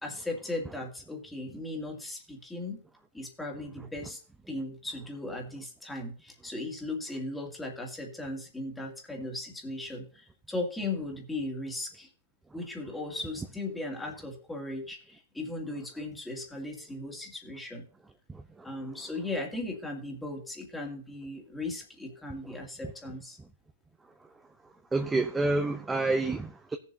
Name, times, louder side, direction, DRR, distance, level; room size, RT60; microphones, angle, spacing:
voice 1, 0.0-2.8 3.1-4.2 4.5-12.1 12.5-17.9 18.6-23.4, left 2 dB, 5° left, 2.3 m, -37 dB
voice 2, 18.3-18.7 22.4-22.6 24.9-26.8, right 2 dB, 10° right, 0.7 m, -29 dB
17.0 x 7.3 x 2.8 m
hypercardioid pair, 140°, 0 cm